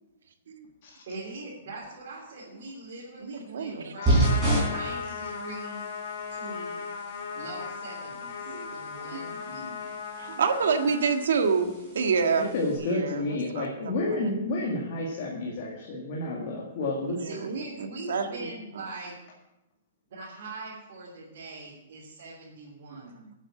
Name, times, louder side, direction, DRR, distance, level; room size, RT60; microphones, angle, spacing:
voice 1, 1.1-4.3 4.6-5.8 6.3-6.8 7.3-9.7 17.2-19.1 20.1-23.2, right 2 dB, 45° right, -6 dB, 3.2 m, -42 dB
voice 2, 3.2-3.9 4.5-4.6 8.5-8.8 9.1-9.8 10.2-12.5 12.8-14.2 17.0-17.6 18.1-18.5 22.9-23.3, right 5 dB, 80° right, 6 dB, 1.6 m, -29 dB
Trumpet, 4.0-11.2, left 6 dB, 60° left, 2.5 m, -37 dB
sound 1, 4.1-12.8, right 1 dB, 10° right, 3.9 m, -32 dB
voice 3, 12.4-17.2, left 2 dB, 35° left, -2 dB, 2.0 m, -30 dB
10.5 x 8.4 x 7.6 m, 0.93 s
hypercardioid pair, 175°, 0 cm